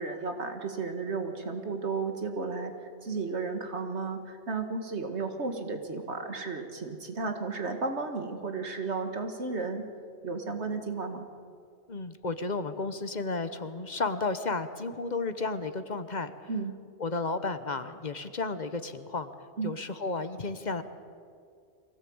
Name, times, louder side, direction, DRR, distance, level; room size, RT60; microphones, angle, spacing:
voice 1, 0.0-9.8 10.2-11.3 16.5-16.7 19.6-19.7, right 4 dB, 70° right, 5 dB, 2.1 m, -33 dB
voice 2, 11.9-16.3 17.0-19.3 19.6-20.8, left 3 dB, 40° left, 11 dB, 1.1 m, -33 dB
24.0 x 17.5 x 8.7 m, 2.3 s
omnidirectional pair, 1.2 m